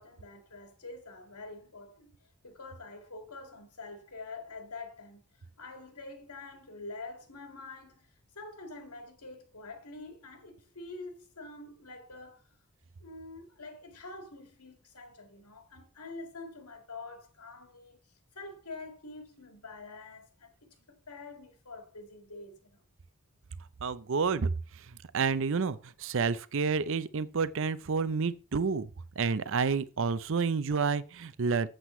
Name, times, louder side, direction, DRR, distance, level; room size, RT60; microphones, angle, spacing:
voice 1, 0.0-12.5 13.0-18.0 18.3-22.8, left 3 dB, 90° left, 2.1 m, -46 dB
voice 2, 23.8-24.5 25.1-28.9 29.2-31.7, right 5 dB, 60° right, 0.6 m, -29 dB
8.2 x 7.8 x 4.4 m
head